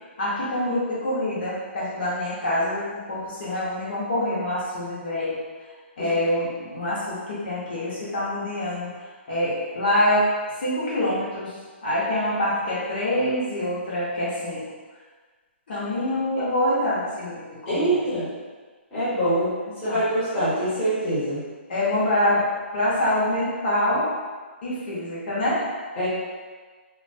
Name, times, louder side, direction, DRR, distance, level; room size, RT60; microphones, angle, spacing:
voice 1, 0.2-5.4 6.0-8.9 9.3-10.2 10.5-11.5 11.8-14.7 15.7-18.0 19.8-20.0 21.7-22.4 22.7-24.1 24.6-25.6, left 1 dB, 50° left, -9 dB, 0.9 m, -25 dB
voice 2, 17.7-18.3 18.9-19.5 19.8-21.4 26.0-26.1, right 1 dB, 10° left, -13 dB, 1.0 m, -24 dB
2.5 x 2.2 x 2.5 m, 1.4 s
hypercardioid pair, 160°, 7 cm